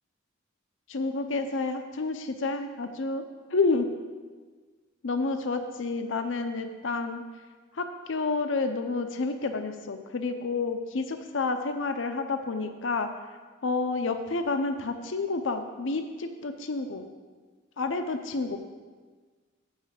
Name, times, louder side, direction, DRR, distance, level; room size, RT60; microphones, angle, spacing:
voice 1, 0.9-3.2 3.5-3.9 5.0-7.2 7.7-13.1 13.6-17.1 17.8-18.6, left 3 dB, 70° left, 7 dB, 0.6 m, -29 dB
8.1 x 5.7 x 7.4 m, 1.4 s
head